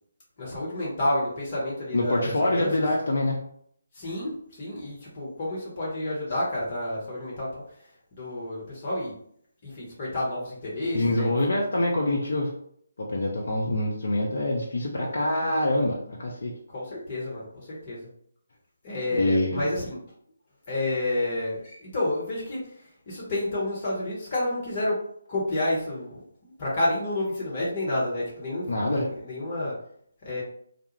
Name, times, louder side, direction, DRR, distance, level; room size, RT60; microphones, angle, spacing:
voice 1, 0.4-2.7 3.9-7.6 8.1-9.1 9.6-11.4 15.0-15.1 16.7-18.1 18.8-20.0 20.7-22.6 23.1-25.0 25.3-29.7 30.2-30.4, left 1 dB, 35° left, -6 dB, 0.9 m, -30 dB
voice 2, 1.9-3.4 10.9-12.5 13.0-16.5 19.1-19.6 28.7-29.1, left 1 dB, 55° left, -2 dB, 0.4 m, -25 dB
2.3 x 2.0 x 3.0 m, 0.66 s
figure-of-eight pair, 145°, 0 cm